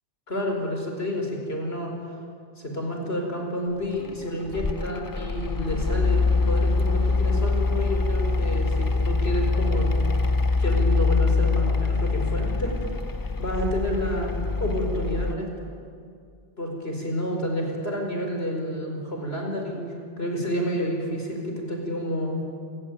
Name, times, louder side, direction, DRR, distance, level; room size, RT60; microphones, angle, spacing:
voice 1, 0.3-1.9 2.6-9.9 10.6-12.7 13.4-15.7 16.6-22.4, equal, 55° left, 2 dB, 5.0 m, -29 dB
Mechanical fan, 4.0-15.3, left 3 dB, 30° left, 0.4 m, -24 dB
28.0 x 17.5 x 9.5 m, 2.3 s
omnidirectional pair, 1.2 m